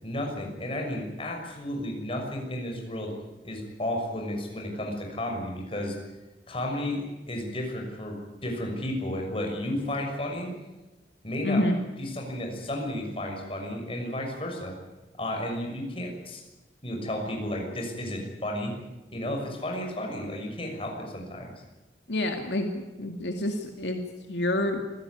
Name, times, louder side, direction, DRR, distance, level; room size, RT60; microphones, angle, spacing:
voice 1, 0.0-3.1 3.4-5.9 6.5-8.2 8.4-10.5 11.2-11.7 12.0-14.7 15.2-16.4 16.8-18.7 19.1-21.5, left 1 dB, 30° left, 2 dB, 6.3 m, -32 dB
voice 2, 11.4-11.8 22.1-22.7 23.0-24.0 24.3-24.8, left 1 dB, 70° left, 4 dB, 2.2 m, -27 dB
26.5 x 16.0 x 9.7 m, 1.1 s
head